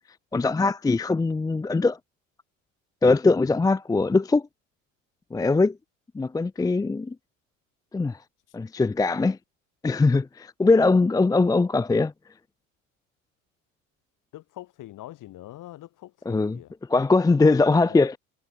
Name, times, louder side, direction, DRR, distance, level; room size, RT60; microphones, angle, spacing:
voice 1, 0.3-2.0 3.0-4.4 5.3-5.8 6.1-7.1 7.9-8.2 8.5-9.4 9.8-12.1 16.3-16.6 16.9-18.2, left 3 dB, 10° left, 0.6 m, -21 dB
voice 2, 14.3-16.7 17.8-18.1, left 15 dB, 50° left, 5.5 m, -43 dB
hypercardioid pair, 85°, 40 cm